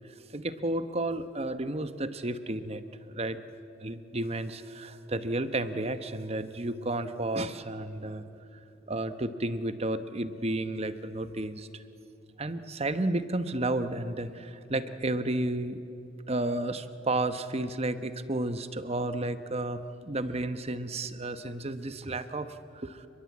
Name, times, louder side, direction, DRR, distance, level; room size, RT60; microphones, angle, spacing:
voice 1, 0.3-3.4 3.8-8.2 8.9-11.8 12.4-15.8 16.3-23.1, right 2 dB, 30° right, 11 dB, 1.0 m, -32 dB
29.5 x 21.5 x 8.5 m, 2.8 s
head